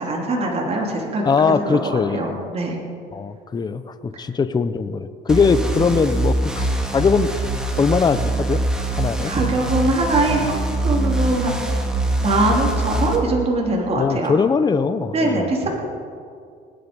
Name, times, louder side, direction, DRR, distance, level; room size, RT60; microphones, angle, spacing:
voice 1, 0.0-2.8 9.3-11.6 12.2-14.4 15.1-15.7, right 2 dB, 35° right, -1 dB, 3.2 m, -22 dB
voice 2, 1.2-2.5 3.1-7.3 7.8-8.6 8.9-9.3 14.0-15.5, left 5 dB, 25° left, 12 dB, 0.6 m, -21 dB
sound 1, 5.3-13.2, right 2 dB, 5° right, 2.0 m, -23 dB
19.0 x 10.0 x 5.3 m, 2.2 s
cardioid pair, 110°, 17 cm